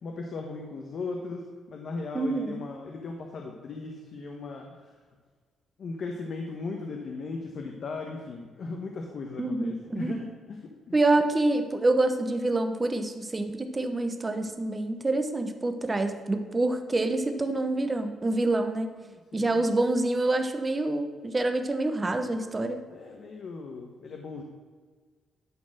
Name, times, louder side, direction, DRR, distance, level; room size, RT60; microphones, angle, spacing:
voice 1, 0.0-4.7 5.8-10.9 19.0-19.6 22.9-24.4, left 3 dB, 55° left, 2 dB, 1.0 m, -37 dB
voice 2, 2.1-2.7 9.4-10.3 10.9-18.9 19.3-22.8, right 2 dB, 20° right, 7 dB, 0.9 m, -27 dB
11.0 x 4.3 x 6.5 m, 1.5 s
cardioid pair, 120°, 0 cm